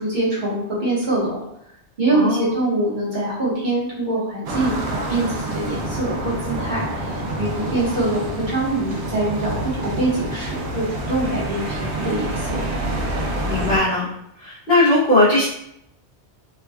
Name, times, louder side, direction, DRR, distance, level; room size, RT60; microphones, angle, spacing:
voice 1, 0.0-1.4 2.0-12.6, right 2 dB, 45° right, -8 dB, 1.1 m, -24 dB
voice 2, 2.1-2.5 13.5-14.1 14.4-15.5, left 2 dB, 55° left, -10 dB, 0.9 m, -18 dB
sound 1, 4.5-13.8, right 1 dB, 85° right, 0.9 m, -27 dB
3.3 x 2.2 x 2.2 m, 0.77 s
omnidirectional pair, 1.2 m